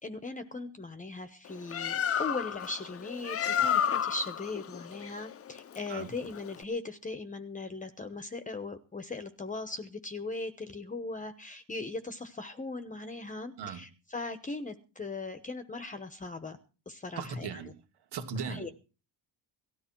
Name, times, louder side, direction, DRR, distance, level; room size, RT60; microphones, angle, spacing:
voice 1, 0.0-16.6 16.9-17.7 18.4-18.7, left 3 dB, 20° left, 1.1 m, -39 dB
Bird, 1.5-6.6, left 8 dB, 35° left, 0.7 m, -32 dB
voice 2, 17.2-17.7 18.1-18.7, right 5 dB, 80° right, 2.7 m, -37 dB
18.5 x 13.5 x 4.6 m
cardioid pair, 160°, 39 cm